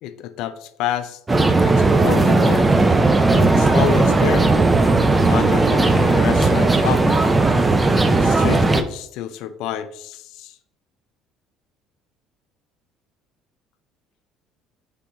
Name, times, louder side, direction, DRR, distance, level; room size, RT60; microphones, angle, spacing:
voice 1, 0.0-1.2 1.6-2.7 3.3-4.5 5.1-7.2 8.1-10.5, left 11 dB, 70° left, 11 dB, 0.4 m, -28 dB
sound 1, 1.3-8.8, right 3 dB, 15° right, 0.3 m, -16 dB
5.1 x 3.4 x 2.9 m, 0.70 s
cardioid pair, 140°, 0 cm